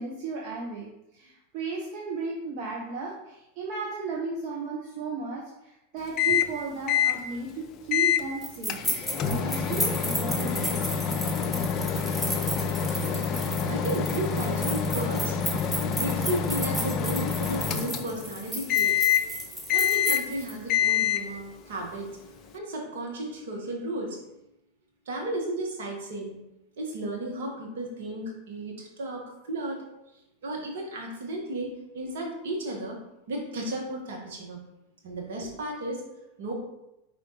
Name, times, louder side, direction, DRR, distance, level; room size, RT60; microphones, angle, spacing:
voice 1, 0.0-8.8 9.2-11.1, right 3 dB, 50° right, -2 dB, 1.0 m, -35 dB
Microwave oven, 6.2-6.6 6.9-7.2 7.9-8.3 8.7-18.3 18.7-19.3 19.7-20.3 20.7-21.3, left 8 dB, 40° left, 0.5 m, -27 dB
sound 1, 8.4-20.5, right 1 dB, 5° right, 1.2 m, -34 dB
voice 2, 12.8-24.4 25.0-26.3 26.8-29.8 30.4-33.0 33.3-34.6 35.0-36.0 36.4-36.5, right 1 dB, 70° right, 0 dB, 1.6 m, -34 dB
5.2 x 4.3 x 4.2 m, 0.89 s
hypercardioid pair, 95°, 0 cm